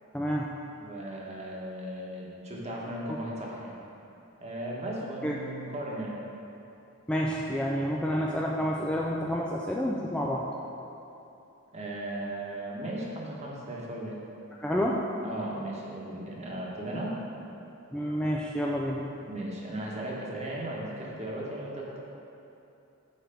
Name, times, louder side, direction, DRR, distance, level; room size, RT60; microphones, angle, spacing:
voice 1, 0.1-0.5 5.2-5.4 7.1-10.5 14.6-15.0 17.9-19.1, equal, 5° left, -3 dB, 0.3 m, -29 dB
voice 2, 0.8-3.7 4.4-6.1 11.7-14.2 14.8-17.1 19.3-22.0, right 1 dB, 30° right, -3 dB, 1.1 m, -36 dB
6.7 x 4.6 x 5.1 m, 2.9 s
head